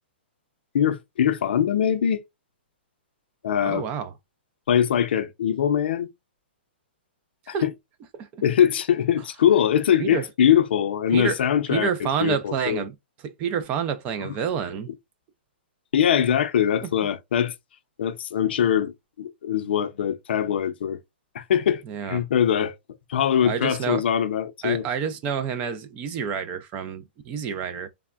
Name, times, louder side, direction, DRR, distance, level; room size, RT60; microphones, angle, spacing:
voice 1, 0.7-2.2 3.4-3.8 4.7-6.1 7.5-7.7 8.4-12.8 14.2-14.3 15.9-17.5 18.0-21.0 21.3-21.8 22.1-22.7 23.1-24.8, left 9 dB, 65° left, 0.5 m, -22 dB
voice 2, 3.6-4.1 7.5-7.6 8.1-8.4 10.0-10.3 11.1-11.4 11.7-13.0 13.2-14.9 16.8-16.9 21.9-22.2 23.4-24.0 24.6-27.9, right 7 dB, 20° right, 0.3 m, -28 dB
3.4 x 2.1 x 2.3 m
hypercardioid pair, 155°, 6 cm